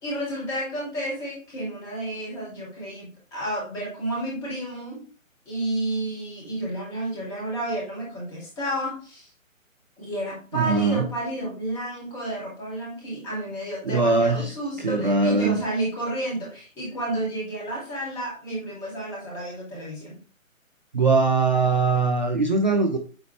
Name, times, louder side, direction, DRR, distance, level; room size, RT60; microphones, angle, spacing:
voice 1, 0.0-5.0 5.5-9.3 10.0-20.2, right 1 dB, 5° left, -3 dB, 1.1 m, -31 dB
voice 2, 10.5-11.0 13.8-15.6 20.9-23.0, right 4 dB, 35° right, 5 dB, 0.6 m, -21 dB
8.7 x 3.9 x 3.1 m, 0.37 s
figure-of-eight pair, 140°, 41 cm